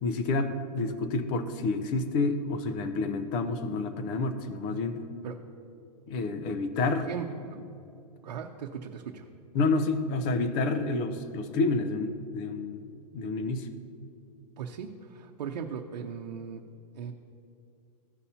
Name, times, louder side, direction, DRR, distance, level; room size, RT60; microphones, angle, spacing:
voice 1, 0.0-5.0 6.1-7.0 9.5-12.8 13.1-13.7, left 3 dB, 25° left, 9 dB, 0.5 m, -29 dB
voice 2, 6.8-7.7 8.2-9.3 14.6-16.6 16.9-17.1, right 7 dB, 80° right, 1 dB, 0.8 m, -38 dB
15.5 x 5.6 x 2.8 m, 2.6 s
hypercardioid pair, 160°, 21 cm